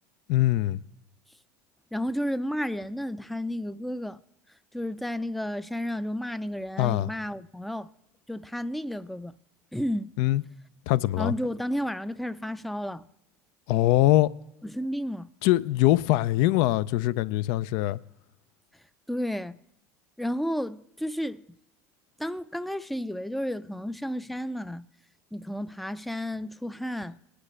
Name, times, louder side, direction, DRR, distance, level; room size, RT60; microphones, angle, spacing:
voice 1, 0.3-0.8 6.8-7.1 10.2-10.4 10.9-11.3 13.7-14.3 15.4-18.0, left 15 dB, 70° left, 0.4 m, -22 dB
voice 2, 1.9-4.2 4.7-7.9 8.3-9.4 9.7-10.1 11.2-13.1 14.6-15.3 19.1-19.6 20.2-21.4 22.2-24.9 25.3-27.2, equal, ahead, 0.4 m, -32 dB
20.5 x 9.7 x 3.2 m
supercardioid pair, 105°, 8 cm